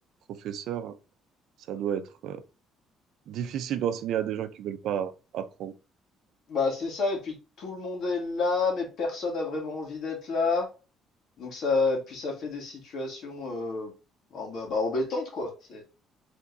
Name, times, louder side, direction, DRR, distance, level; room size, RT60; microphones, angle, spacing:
voice 1, 0.3-0.9 1.7-2.4 3.3-5.7, right 9 dB, 65° right, 0.6 m, -32 dB
voice 2, 6.5-10.7 11.4-13.9 14.3-15.8, left 3 dB, 50° left, 1.9 m, -29 dB
4.9 x 3.5 x 2.7 m
cardioid pair, 160°, 0 cm